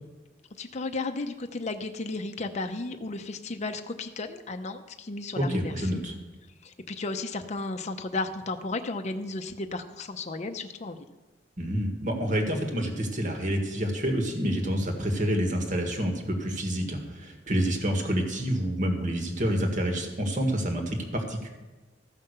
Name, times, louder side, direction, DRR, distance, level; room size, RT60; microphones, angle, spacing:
voice 1, 0.6-6.0 6.6-11.0, left 3 dB, 40° left, 6 dB, 0.6 m, -34 dB
voice 2, 5.3-6.1 11.6-21.5, equal, 45° right, 3 dB, 1.7 m, -28 dB
14.5 x 5.6 x 6.7 m, 1.2 s
head